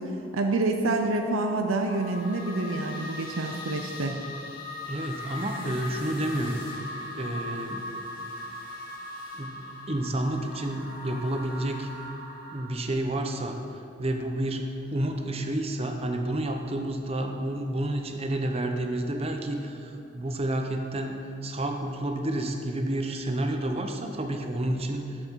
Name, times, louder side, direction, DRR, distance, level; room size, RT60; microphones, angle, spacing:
voice 1, 0.0-4.2, right 2 dB, 85° right, 4 dB, 0.6 m, -27 dB
sound 1, 1.9-12.6, left 2 dB, 45° left, 2.0 m, -39 dB
voice 2, 4.9-6.6 7.2-7.9 9.3-11.9 12.5-13.6 14.0-25.2, right 1 dB, 30° right, 4 dB, 0.8 m, -30 dB
12.0 x 7.7 x 4.6 m, 2.7 s
head